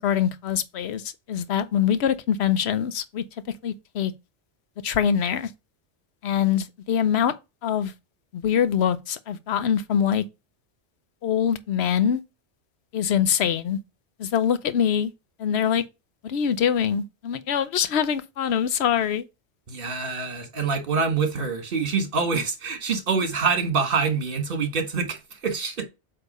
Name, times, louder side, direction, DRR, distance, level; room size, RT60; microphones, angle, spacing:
voice 1, 0.0-3.2 3.6-4.1 4.8-5.5 6.2-7.3 7.6-7.9 8.3-10.2 11.2-12.2 12.9-13.8 14.2-15.1 15.4-15.8 16.2-19.3, left 8 dB, 65° left, 1.0 m, -24 dB
voice 2, 19.7-25.8, right 5 dB, 50° right, 1.6 m, -25 dB
8.2 x 2.9 x 5.3 m
omnidirectional pair, 1.2 m